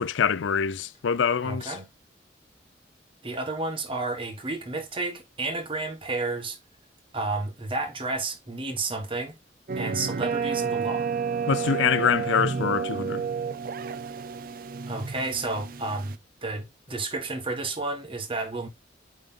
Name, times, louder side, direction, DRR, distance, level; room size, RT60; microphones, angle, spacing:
voice 1, 0.0-1.8 11.5-13.2, left 6 dB, 85° left, 0.4 m, -25 dB
voice 2, 1.4-1.9 3.2-6.6 7.1-9.3 9.8-11.1 14.9-18.7, right 3 dB, 30° right, 1.5 m, -31 dB
sound 1, 9.7-16.2, right 6 dB, 50° right, 0.4 m, -30 dB
8.6 x 3.5 x 3.7 m
head